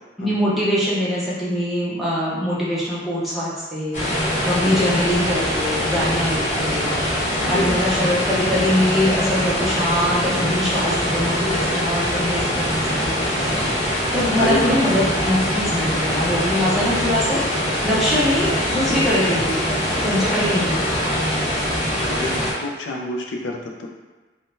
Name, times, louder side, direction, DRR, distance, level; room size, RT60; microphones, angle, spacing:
voice 1, 0.2-4.0 4.4-6.9 7.5-17.4 17.8-21.0, left 1 dB, ahead, -9 dB, 0.7 m, -23 dB
sound 1, 3.9-22.5, equal, 40° left, 0.9 m, -23 dB
voice 2, 7.4-7.8 14.4-14.8 22.1-23.9, left 1 dB, 90° left, 1 dB, 0.5 m, -27 dB
3.6 x 2.1 x 2.6 m, 1.3 s
head